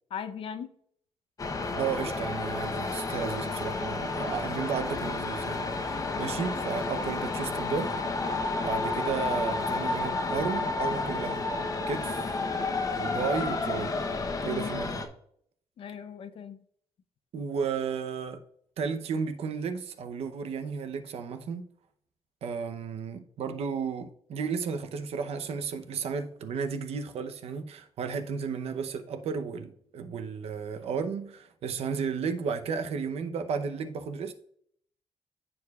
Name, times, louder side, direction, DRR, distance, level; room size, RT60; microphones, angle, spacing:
voice 1, 0.1-0.7 14.4-14.7 15.8-16.6, left 7 dB, 60° left, 0.6 m, -38 dB
sound 1, 1.4-15.1, left 3 dB, 35° left, 0.8 m, -31 dB
voice 2, 1.7-8.0 8.6-11.5 11.9-12.3 13.0-14.0 14.5-15.0 17.3-18.4 18.8-21.7 22.4-34.3, right 6 dB, 75° right, 0.8 m, -33 dB
14.0 x 4.8 x 2.4 m
wide cardioid pair, 145°, 10 cm